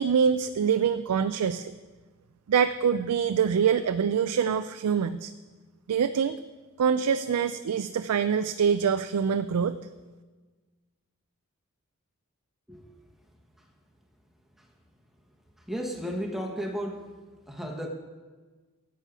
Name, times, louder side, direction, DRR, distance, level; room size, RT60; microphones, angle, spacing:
voice 1, 0.0-1.7 2.5-5.3 5.9-6.4 6.8-9.8, right 7 dB, 80° right, 11 dB, 0.4 m, -25 dB
voice 2, 15.7-17.2 17.5-17.9, equal, ahead, 1 dB, 1.2 m, -34 dB
10.0 x 8.4 x 6.0 m, 1.3 s
head